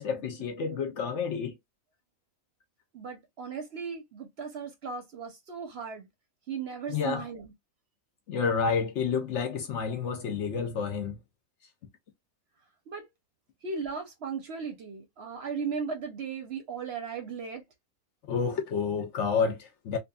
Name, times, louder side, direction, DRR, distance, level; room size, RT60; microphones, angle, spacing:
voice 1, 0.0-1.5 6.9-7.2 8.3-11.2 18.3-20.0, left 6 dB, 65° left, 0.8 m, -29 dB
voice 2, 2.9-6.1 6.5-7.5 12.9-13.0 13.6-17.6, right 5 dB, 55° right, 0.8 m, -36 dB
3.0 x 2.5 x 2.2 m
omnidirectional pair, 1.5 m